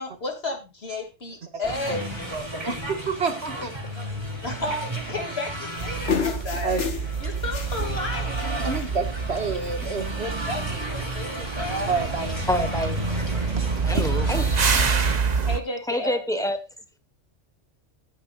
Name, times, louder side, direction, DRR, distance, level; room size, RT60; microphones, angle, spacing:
voice 1, 0.0-2.0 4.4-6.8 7.2-8.6 10.5-11.9 13.9-14.0 15.4-16.2, left 2 dB, 60° left, 3.0 m, -32 dB
voice 2, 1.4-3.8 6.6-6.9 8.6-10.3 11.9-12.4 13.6-13.7, right 4 dB, 60° right, 2.1 m, -29 dB
sound 1, 1.6-15.2, equal, 20° right, 3.4 m, -34 dB
sound 2, 5.8-7.9 8.2-8.4 8.7-9.1 9.3-9.9 10.6-10.7, left 6 dB, 75° left, 1.7 m, -30 dB
sound 3, 5.8-15.6, right 5 dB, 40° right, 0.9 m, -27 dB
voice 3, 12.5-13.3 13.9-14.9 15.9-16.6, left 1 dB, 5° left, 1.4 m, -27 dB
14.5 x 9.8 x 2.5 m
omnidirectional pair, 1.2 m